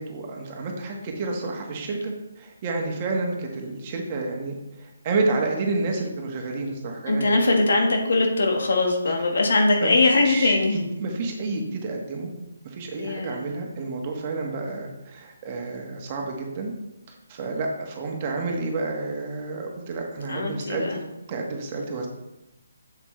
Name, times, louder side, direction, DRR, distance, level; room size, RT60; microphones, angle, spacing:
voice 1, 0.0-7.2 9.8-9.9 10.2-12.3 12.6-16.7 17.1-22.1, right 3 dB, 30° right, 1 dB, 1.6 m, -30 dB
voice 2, 7.1-10.8 13.0-13.4 20.3-21.0, left 2 dB, 65° left, 2 dB, 1.6 m, -21 dB
7.5 x 7.4 x 3.3 m, 0.95 s
figure-of-eight pair, 145°, 0 cm